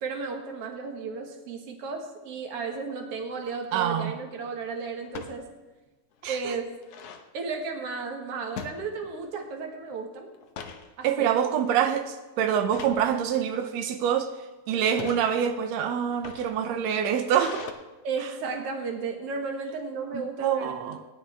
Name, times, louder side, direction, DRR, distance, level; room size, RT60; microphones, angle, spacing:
voice 1, 0.0-5.5 6.3-6.7 7.3-10.3 11.0-11.4 13.1-13.2 18.0-20.8, right 4 dB, 50° right, 3 dB, 2.1 m, -34 dB
sound 1, 3.3-3.7 5.1-5.4 5.9-6.0 6.2-7.3 8.6-9.4 9.7-9.9 10.3-10.9 11.4-11.7 12.7-13.0 13.8-14.2 14.8-15.2 16.0-17.7, left 6 dB, 75° left, 1.3 m, -41 dB
voice 2, 3.7-4.1 6.2-6.6 11.0-14.3 14.7-17.7 20.1-21.0, right 8 dB, 85° right, 6 dB, 1.5 m, -26 dB
19.0 x 10.5 x 3.4 m, 1.2 s
omnidirectional pair, 4.0 m